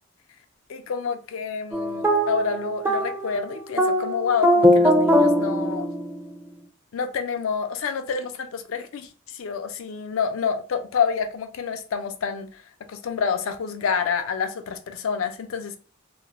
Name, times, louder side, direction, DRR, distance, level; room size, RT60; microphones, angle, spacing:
voice 1, 0.7-5.9 6.9-12.5 12.9-15.8, left 6 dB, 85° left, 0.4 m, -28 dB
sound 1, 1.7-6.3, equal, 10° right, 0.4 m, -21 dB
2.4 x 2.0 x 2.9 m
head